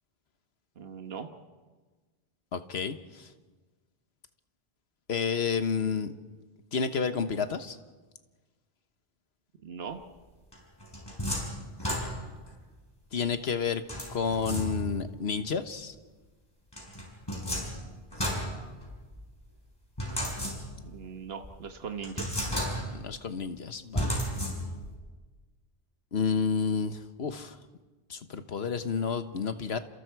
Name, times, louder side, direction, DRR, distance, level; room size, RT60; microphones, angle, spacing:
voice 1, 0.8-1.3 9.6-10.0 20.8-22.7, right 6 dB, 75° right, 6 dB, 1.4 m, -40 dB
voice 2, 2.5-3.3 5.1-6.1 6.7-7.8 13.1-13.8 14.1-15.9 22.9-24.5 26.1-27.6 28.1-29.8, left 6 dB, 85° left, 10 dB, 1.4 m, -30 dB
sound 1, 10.5-12.5 13.9-15.1 16.7-19.2 20.0-21.0 21.4-21.5 22.0-23.1 23.9-25.0, equal, 25° left, 5.7 m, -33 dB
30.0 x 27.5 x 4.7 m, 1.3 s
omnidirectional pair, 1.0 m